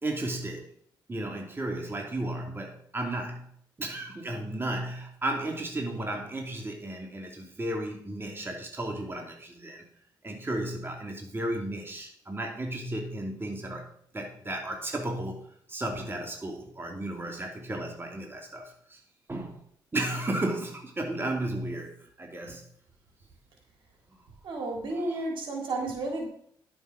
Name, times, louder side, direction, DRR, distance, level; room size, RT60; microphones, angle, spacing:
voice 1, 0.0-0.7 1.1-3.5 3.8-9.9 10.2-13.8 14.1-15.4 15.7-19.0 19.3-19.6 19.9-22.6 24.9-25.2, right 1 dB, 25° right, 3.0 m, -34 dB
voice 2, 24.4-26.3, right 2 dB, 70° right, 3.5 m, -32 dB
11.5 x 7.5 x 5.3 m
supercardioid pair, 70°, 9 cm